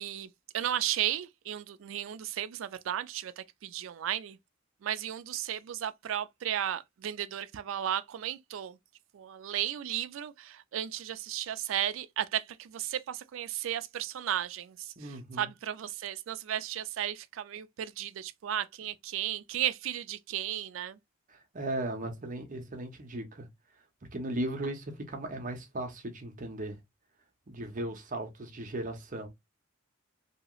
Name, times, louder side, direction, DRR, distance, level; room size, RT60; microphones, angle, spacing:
voice 1, 0.0-4.4 4.8-8.8 9.1-21.0, right 11 dB, 65° right, 0.3 m, -34 dB
voice 2, 15.0-15.5 21.3-23.5 23.7-23.8 24.1-26.8 27.5-29.3, right 1 dB, 40° right, 0.7 m, -37 dB
2.8 x 2.4 x 2.8 m
head